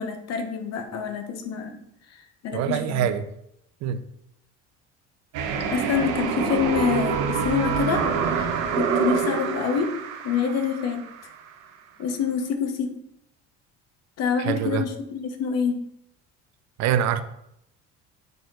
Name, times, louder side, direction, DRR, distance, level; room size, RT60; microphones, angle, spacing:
voice 1, 0.0-1.8 2.1-3.1 5.7-9.9 10.2-11.0 12.0-13.0 14.2-15.8, left 6 dB, 55° left, 6 dB, 1.0 m, -27 dB
voice 2, 2.5-3.3 3.8-4.0 14.4-14.8 16.8-17.2, right 10 dB, 60° right, 11 dB, 0.5 m, -24 dB
sound 1, 5.3-11.3, right 6 dB, 85° right, 1.0 m, -26 dB
6.7 x 4.3 x 3.8 m, 0.78 s
cardioid pair, 125°, 31 cm